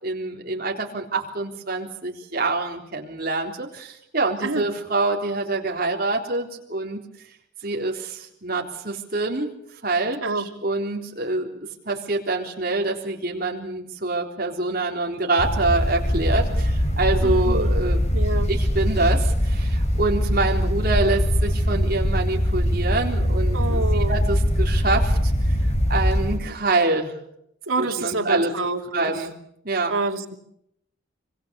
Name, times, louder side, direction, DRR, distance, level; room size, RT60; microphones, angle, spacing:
voice 1, 0.0-7.0 7.6-9.5 9.8-11.6 11.9-18.0 18.5-25.6 25.9-27.1 27.8-28.5 28.9-29.3 29.6-29.9, right 2 dB, 45° right, 1 dB, 3.9 m, -26 dB
sound 1, 15.4-26.4, equal, 35° left, 3.4 m, -22 dB
voice 2, 17.2-17.7 18.1-18.5 23.5-24.2 27.7-29.1 29.9-30.4, right 3 dB, 85° right, 3 dB, 2.7 m, -27 dB
25.5 x 24.5 x 7.1 m, 0.77 s
head